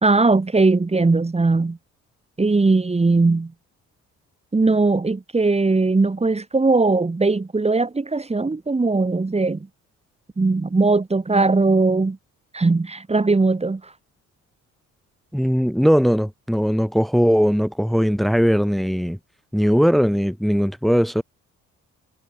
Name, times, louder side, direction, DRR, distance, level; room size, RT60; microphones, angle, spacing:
voice 1, 0.0-1.8 2.4-3.5 4.5-9.7 10.4-12.2 12.5-13.9, right 3 dB, 20° right, 2.7 m, -19 dB
voice 2, 15.3-19.2 19.5-21.2, equal, ahead, 2.6 m, -19 dB
cardioid pair, 90°, 30 cm